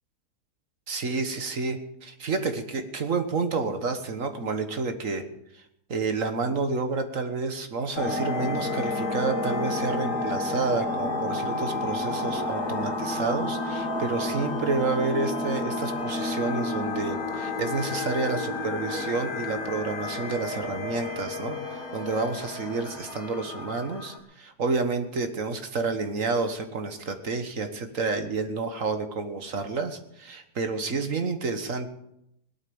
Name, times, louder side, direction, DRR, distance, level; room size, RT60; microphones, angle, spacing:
voice 1, 0.9-5.2 5.5-5.6 5.9-31.9, right 4 dB, 55° right, 7 dB, 1.7 m, -29 dB
sound 1, 7.9-24.2, left 2 dB, 60° left, 2.9 m, -31 dB
20.5 x 8.6 x 7.1 m, 0.79 s
omnidirectional pair, 1.7 m